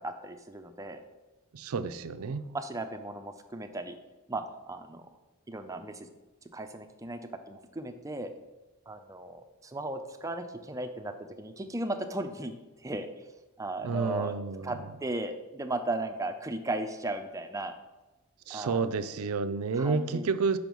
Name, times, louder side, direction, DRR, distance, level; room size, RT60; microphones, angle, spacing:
voice 1, 0.0-1.0 2.5-4.0 4.3-5.1 5.5-6.1 6.5-8.3 8.9-12.5 12.8-13.1 13.6-14.3 14.6-17.7 18.5-18.8 19.8-20.3, right 2 dB, 15° right, 6 dB, 0.5 m, -36 dB
voice 2, 1.5-2.5 13.8-14.7 18.5-20.6, right 4 dB, 75° right, 11 dB, 0.5 m, -30 dB
5.3 x 4.9 x 6.2 m, 1.1 s
head